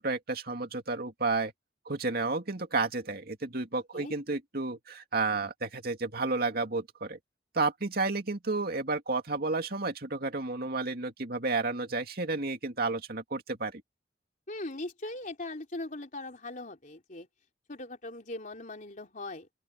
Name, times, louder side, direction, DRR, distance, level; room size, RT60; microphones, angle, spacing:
voice 1, 0.0-1.5 1.9-7.2 7.5-13.8, right 3 dB, 55° right, 2.4 m, -31 dB
voice 2, 14.5-17.3 17.7-19.5, left 2 dB, 45° left, 3.5 m, -40 dB
open air
head